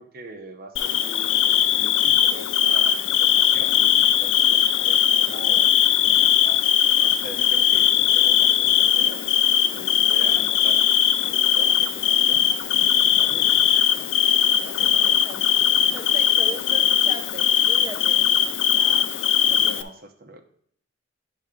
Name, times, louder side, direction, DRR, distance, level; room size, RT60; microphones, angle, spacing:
voice 1, 0.0-6.6 7.0-9.2 9.7-10.9 11.2-14.2 14.5-15.2 19.4-20.4, right 2 dB, 55° right, 0.8 m, -42 dB
Bird / Cricket, 0.8-19.8, left 9 dB, 80° left, 0.4 m, -20 dB
voice 2, 14.8-15.4 15.9-18.3 18.7-19.2, right 2 dB, 20° right, 0.7 m, -39 dB
9.9 x 3.4 x 5.0 m
head